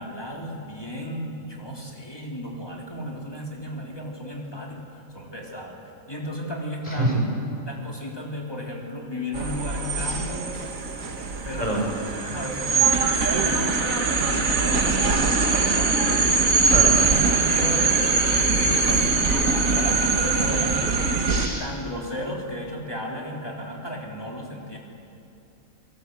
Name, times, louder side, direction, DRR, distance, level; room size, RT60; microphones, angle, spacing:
voice 1, 0.0-4.8 5.1-5.8 6.1-7.3 7.7-10.5 11.4-16.1 16.8-18.0 18.3-19.2 19.7-21.2 21.6-24.8, left 1 dB, 20° left, -1 dB, 3.5 m, -34 dB
sound 1, 9.3-21.5, right 4 dB, 85° right, 2.1 m, -22 dB
voice 2, 21.3-21.7, right 1 dB, 25° right, -1 dB, 5.1 m, -26 dB
27.5 x 19.0 x 8.1 m, 2.7 s
omnidirectional pair, 1.4 m